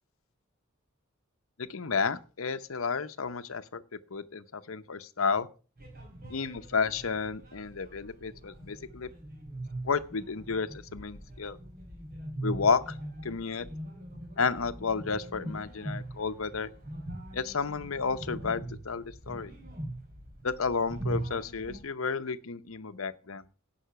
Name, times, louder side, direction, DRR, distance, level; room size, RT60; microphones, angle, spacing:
voice 1, 1.6-3.8 4.1-5.5 6.3-9.1 9.8-11.6 12.4-13.0 13.2-13.6 14.4-16.7 17.3-19.5 20.4-23.4, left 5 dB, 75° left, 0.8 m, -31 dB
sound 1, 5.8-21.8, right 1 dB, 45° right, 4.2 m, -41 dB
17.0 x 5.8 x 5.8 m
head